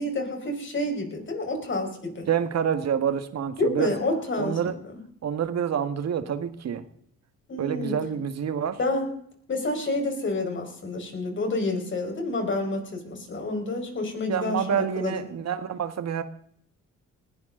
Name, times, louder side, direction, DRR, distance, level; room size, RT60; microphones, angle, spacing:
voice 1, 0.0-2.3 3.6-4.8 7.5-7.9 8.8-9.1 9.5-15.2, left 2 dB, 40° left, 3 dB, 5.1 m, -29 dB
voice 2, 2.3-3.9 4.4-4.7 5.2-6.9 7.6-8.8 14.3-16.2, right 8 dB, 60° right, 9 dB, 1.8 m, -27 dB
20.0 x 17.0 x 3.9 m, 0.65 s
cardioid pair, 90°, 30 cm